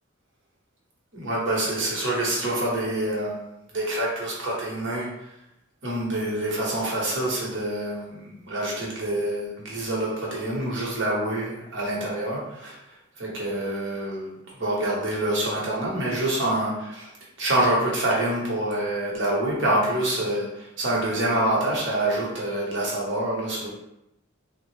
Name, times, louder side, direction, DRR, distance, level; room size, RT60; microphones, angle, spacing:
voice 1, 1.1-5.3 5.8-23.7, right 1 dB, 60° right, -5 dB, 1.1 m, -26 dB
3.6 x 2.1 x 3.2 m, 0.84 s
head